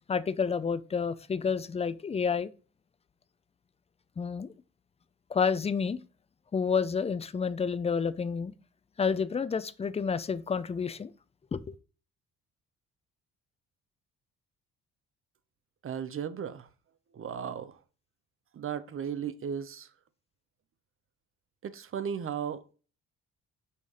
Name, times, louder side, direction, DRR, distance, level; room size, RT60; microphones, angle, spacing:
voice 1, 0.1-2.5 4.2-4.5 5.3-6.0 6.5-8.5 9.0-11.1 11.5-11.7, left 6 dB, 20° left, 0.5 m, -29 dB
voice 2, 15.8-16.7 17.1-17.8 18.5-19.9 21.6-22.6, right 8 dB, 45° right, 0.7 m, -35 dB
5.6 x 3.2 x 5.4 m
cardioid pair, 90°, 30 cm